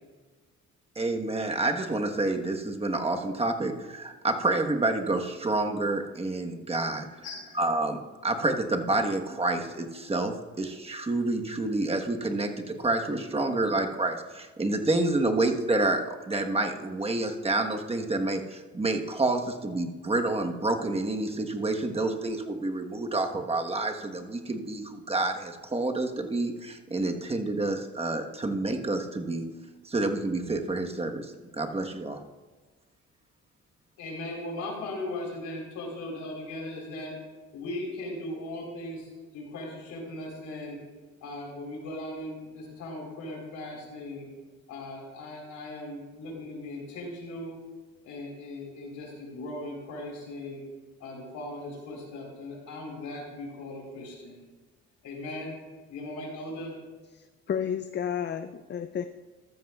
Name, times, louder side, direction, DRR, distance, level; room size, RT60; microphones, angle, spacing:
voice 1, 1.0-7.1 7.5-29.4 29.8-32.2, right 2 dB, 20° right, 4 dB, 1.2 m, -28 dB
voice 2, 7.2-7.6 34.0-37.2 37.5-40.8 41.2-44.3 44.7-47.6 48.0-50.6 51.0-54.4 55.0-55.5 55.9-56.7, left 1 dB, 85° left, -1 dB, 3.8 m, -38 dB
voice 3, 57.1-59.0, left 8 dB, 35° left, 10 dB, 0.5 m, -32 dB
14.0 x 13.5 x 2.3 m, 1.3 s
cardioid pair, 90°, 30 cm